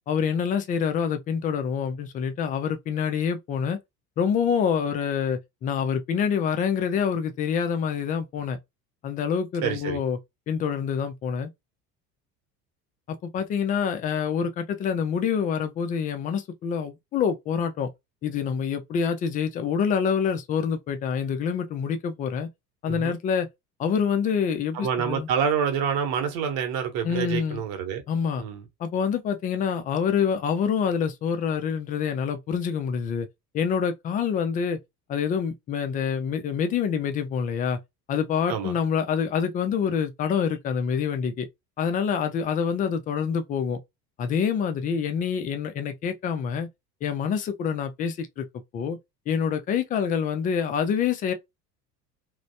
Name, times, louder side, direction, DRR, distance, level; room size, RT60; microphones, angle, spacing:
voice 1, 0.1-3.8 4.2-8.6 9.0-10.2 10.5-11.5 13.1-17.9 18.2-22.5 22.8-23.5 23.8-25.3 27.0-27.6 28.1-28.4 28.8-33.3 33.5-34.8 35.1-37.8 38.1-41.5 41.8-43.8 44.2-46.7 47.0-48.4 48.7-49.0 49.3-51.3, left 7 dB, 20° left, 0.4 m, -26 dB
voice 2, 9.6-10.0 22.9-23.2 24.7-28.0 28.4-28.6 38.5-38.7, right 7 dB, 45° right, 1.1 m, -27 dB
3.0 x 2.1 x 2.7 m
figure-of-eight pair, 65°, 48 cm